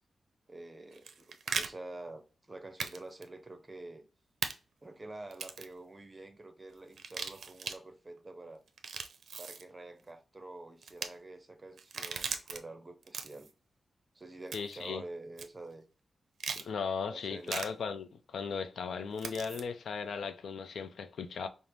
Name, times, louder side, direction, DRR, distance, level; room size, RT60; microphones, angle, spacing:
voice 1, 0.5-2.2 2.5-4.0 4.8-8.6 9.4-13.5 14.1-15.9 17.0-17.6, right 2 dB, 20° right, 0.6 m, -47 dB
sound 1, 0.9-1.7 2.8-3.0 3.2-3.3 4.4-4.5 5.3-5.7 6.9-7.8 8.7-9.6 10.8-11.1 11.8-12.6 13.0-13.5 14.5-14.8 15.4-15.5 16.4-16.7 17.5-17.7 19.2-19.6, right 5 dB, 75° right, 0.5 m, -38 dB
voice 2, 14.5-15.0 16.5-21.5, left 5 dB, 80° left, 0.4 m, -37 dB
5.2 x 2.0 x 3.0 m
wide cardioid pair, 140°, 0 cm